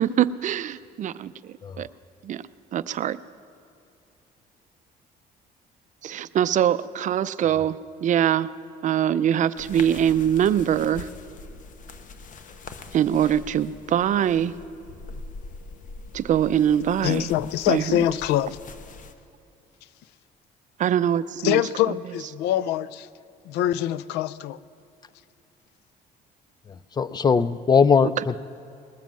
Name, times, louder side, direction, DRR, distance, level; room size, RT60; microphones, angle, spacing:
voice 1, 0.0-1.9 2.2-2.4 2.7-3.2 6.0-8.5 8.8-11.1 12.9-14.5 16.1-17.3 17.7-18.1 20.8-21.6 21.9-22.0 28.2-28.3, right 10 dB, 50° right, 0.5 m, -23 dB
sound 1, 9.5-19.1, left 3 dB, 50° left, 1.0 m, -42 dB
voice 2, 17.0-18.6 21.4-23.1 23.5-24.6, left 12 dB, 90° left, 0.4 m, -24 dB
voice 3, 27.0-28.4, left 5 dB, 25° left, 0.4 m, -20 dB
20.5 x 7.3 x 7.3 m
cardioid pair, 110°, 17 cm